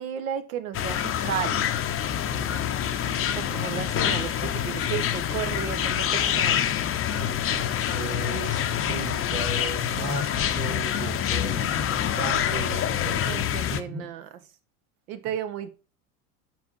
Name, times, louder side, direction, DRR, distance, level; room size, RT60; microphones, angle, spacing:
voice 1, 0.0-1.7 3.3-6.7 13.2-14.3 15.1-15.7, right 9 dB, 65° right, 1.1 m, -33 dB
sound 1, 0.7-13.8, left 9 dB, 30° left, 0.7 m, -26 dB
voice 2, 2.1-2.6 3.5-3.6 7.1-14.1, right 3 dB, 25° right, 1.5 m, -37 dB
6.0 x 3.4 x 5.3 m
hypercardioid pair, 80°, 44 cm